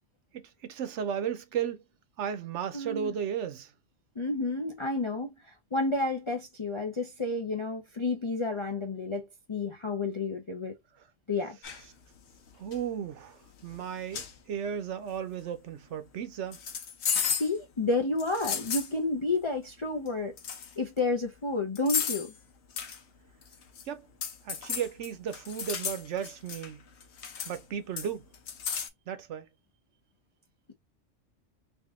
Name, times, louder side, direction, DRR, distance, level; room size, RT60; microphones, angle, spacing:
voice 1, 0.3-1.8 2.2-3.7 12.6-16.6 23.9-24.1 24.4-26.8 27.5-28.3 29.1-29.5, right 8 dB, 70° right, 1.0 m, -35 dB
voice 2, 2.7-3.1 4.2-10.8 11.3-11.6 17.2-20.3 20.8-22.3, left 3 dB, 45° left, 0.4 m, -31 dB
sound 1, 11.6-11.8 12.5-12.8 13.7-13.8 14.1-14.3 16.5-17.6 18.2-18.9 20.1-20.2 20.4-20.7 21.8-22.3 22.8-23.0 23.4-23.8 24.2-26.7 27.0-27.6 28.0-28.9, left 7 dB, 65° left, 1.0 m, -33 dB
3.5 x 2.6 x 3.5 m
omnidirectional pair, 1.3 m